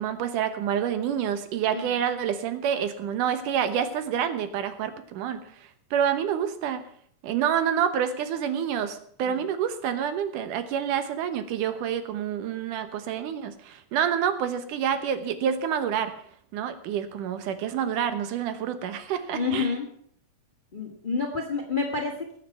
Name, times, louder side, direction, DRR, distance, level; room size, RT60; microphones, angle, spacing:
voice 1, 0.0-6.8 7.2-16.1 16.5-19.7, right 8 dB, 90° right, 10 dB, 2.7 m, -28 dB
voice 2, 19.3-19.8 20.7-22.3, left 4 dB, 25° left, 2 dB, 1.3 m, -29 dB
20.0 x 7.4 x 5.8 m, 0.62 s
omnidirectional pair, 3.6 m